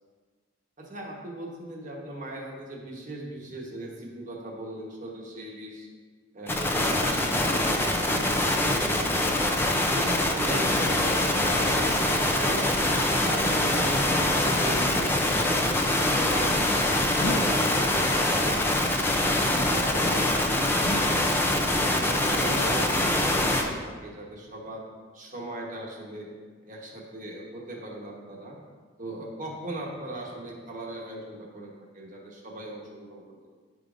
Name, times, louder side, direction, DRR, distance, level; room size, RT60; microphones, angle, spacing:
voice 1, 0.8-5.9 6.3-9.4 9.8-11.8 12.2-18.8 19.3-21.3 21.7-24.9 25.1-26.3 26.6-28.6 29.0-33.5, right 1 dB, 40° right, -1 dB, 1.2 m, -39 dB
sound 1, 6.5-23.6, left 1 dB, 10° left, 0.5 m, -24 dB
sound 2, 17.2-17.4 20.0-20.2 20.8-21.3 22.0-22.3, left 2 dB, 75° left, 0.7 m, -33 dB
10.5 x 4.9 x 2.6 m, 1.5 s
head